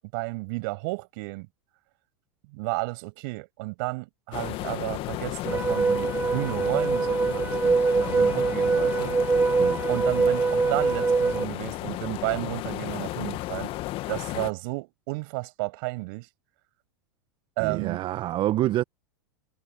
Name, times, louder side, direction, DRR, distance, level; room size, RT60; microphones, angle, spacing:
voice 1, 0.1-1.5 2.5-9.2 9.9-13.7 14.1-16.3 17.6-18.0, right 27 dB, 55° right, 7.8 m, -32 dB
sound 1, 4.3-14.5, left 18 dB, 45° left, 1.8 m, -33 dB
sound 2, 5.4-11.4, right 4 dB, 15° right, 1.6 m, -24 dB
voice 2, 17.6-18.8, right 14 dB, 40° right, 1.4 m, -27 dB
hypercardioid pair, 95°, 13 cm